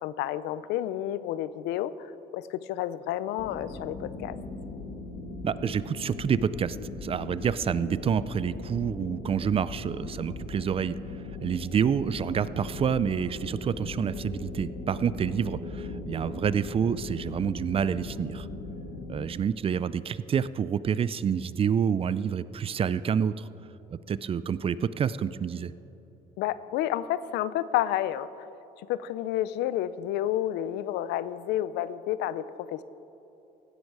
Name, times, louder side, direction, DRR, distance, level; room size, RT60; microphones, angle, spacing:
voice 1, 0.0-2.1 2.3-4.4 26.4-28.3 28.9-32.8, left 12 dB, 90° left, 16 dB, 0.5 m, -30 dB
sound 1, 3.4-19.3, left 2 dB, 60° left, 1.7 m, -39 dB
voice 2, 5.4-11.0 11.4-18.5 19.1-23.5 23.9-25.7, right 7 dB, 35° right, 16 dB, 0.4 m, -28 dB
16.0 x 12.0 x 4.8 m, 3.0 s
cardioid pair, 110°, 17 cm